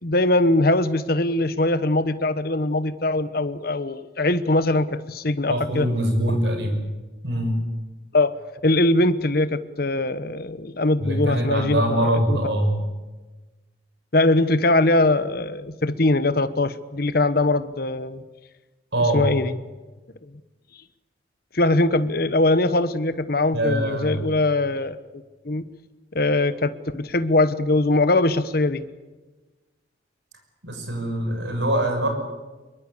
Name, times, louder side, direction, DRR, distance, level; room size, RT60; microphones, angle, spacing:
voice 1, 0.0-5.9 8.1-8.3 8.6-12.6 14.1-18.2 19.1-19.5 21.5-25.0 25.4-25.6 26.1-28.8, left 2 dB, 50° left, 13 dB, 1.1 m, -21 dB
voice 2, 5.5-6.8 7.2-7.6 11.0-12.7 18.9-19.3 23.5-24.3 30.6-32.1, right 1 dB, 70° right, 4 dB, 6.3 m, -23 dB
23.0 x 22.5 x 8.4 m, 1.2 s
head